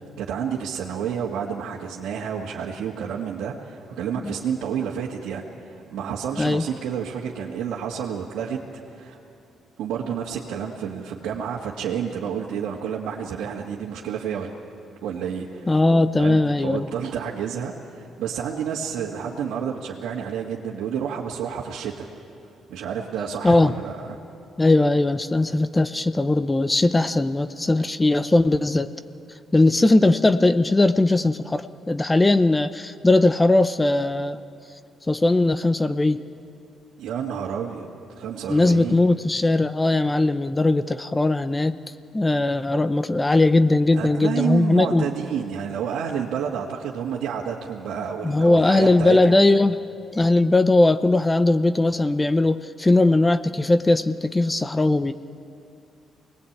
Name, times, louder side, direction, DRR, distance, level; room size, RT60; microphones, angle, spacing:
voice 1, 0.2-8.6 8.9-9.2 9.8-14.5 15.0-15.7 16.2-22.1 22.7-24.2 37.0-37.9 38.2-39.0 43.9-49.4, right 7 dB, 80° right, -4 dB, 1.9 m, -30 dB
voice 2, 15.7-16.9 23.4-23.7 24.6-28.9 29.5-34.4 35.1-36.3 38.5-41.8 42.1-45.1 48.2-49.8 50.1-55.1, left 2 dB, 20° left, 12 dB, 0.7 m, -19 dB
25.5 x 20.0 x 8.8 m, 2.6 s
cardioid pair, 90°, 0 cm